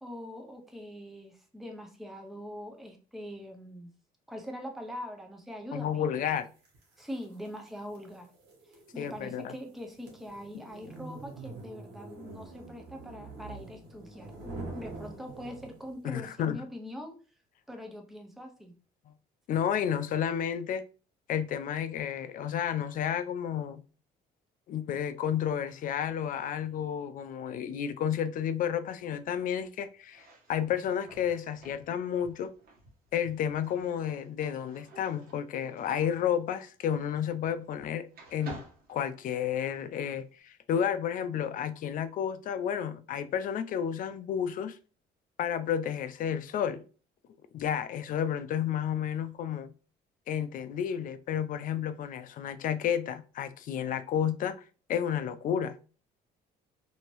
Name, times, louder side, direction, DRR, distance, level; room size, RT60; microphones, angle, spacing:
voice 1, 0.0-3.9 4.3-6.2 7.0-8.3 8.7-17.2 17.7-18.7, equal, ahead, 0.6 m, -43 dB
voice 2, 5.7-6.5 9.0-9.5 16.0-16.6 19.1-19.2 19.5-20.8 21.3-23.8 24.7-32.5 33.1-38.6 38.9-44.8 45.4-46.8 47.5-49.7 50.3-54.5 54.9-55.8, left 9 dB, 55° left, 0.4 m, -31 dB
sound 1, 6.6-16.0, right 3 dB, 80° right, 1.2 m, -46 dB
sound 2, 30.0-37.8 38.1-39.8, right 3 dB, 60° right, 1.2 m, -51 dB
2.8 x 2.7 x 3.0 m
cardioid pair, 110°, 17 cm